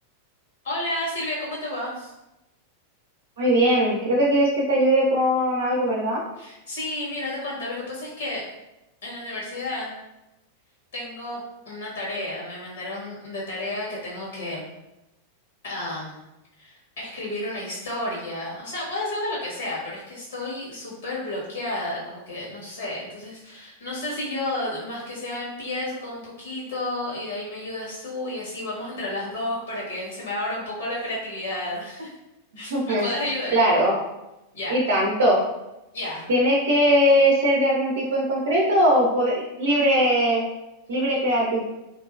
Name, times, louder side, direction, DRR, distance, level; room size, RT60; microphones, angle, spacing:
voice 1, 0.6-2.1 6.4-8.5 9.0-9.9 10.9-14.7 15.6-16.2 16.6-32.2 32.5-33.6 34.5-34.8 35.9-36.3, left 1 dB, 65° left, -5 dB, 1.3 m, -31 dB
voice 2, 3.4-6.2 32.7-33.1 33.5-33.9 34.7-35.4 36.3-40.4 40.9-41.6, equal, 60° right, -4 dB, 0.5 m, -20 dB
2.9 x 2.6 x 2.3 m, 0.93 s
figure-of-eight pair, 90°, 0 cm